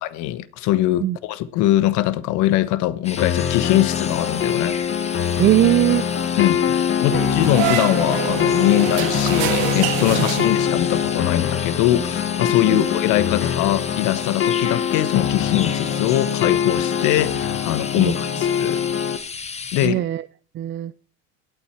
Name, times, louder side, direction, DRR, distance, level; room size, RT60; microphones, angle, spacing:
voice 1, 0.2-4.8 6.3-18.8 19.7-20.1, left 14 dB, 65° left, 1.1 m, -22 dB
sound 1, 3.0-19.9, left 5 dB, 20° left, 1.2 m, -34 dB
sound 2, 3.2-19.2, left 8 dB, 40° left, 1.3 m, -23 dB
voice 2, 5.4-6.1 7.1-7.2 12.7-12.9 18.0-18.1 19.8-20.2 20.5-20.9, right 14 dB, 40° right, 0.5 m, -20 dB
sound 3, 7.0-10.9, right 12 dB, 85° right, 1.5 m, -26 dB
18.0 x 8.3 x 4.4 m
supercardioid pair, 105°, 31 cm